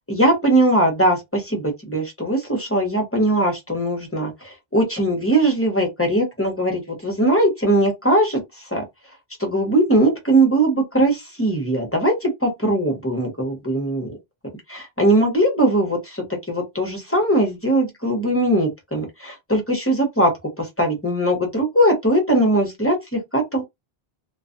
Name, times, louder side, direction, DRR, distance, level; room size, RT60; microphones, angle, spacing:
voice 1, 0.1-8.4 8.7-8.8 9.4-14.1 14.7-20.3 20.6-23.6, right 1 dB, 15° left, 0.8 m, -20 dB
2.3 x 2.3 x 2.5 m
omnidirectional pair, 1.1 m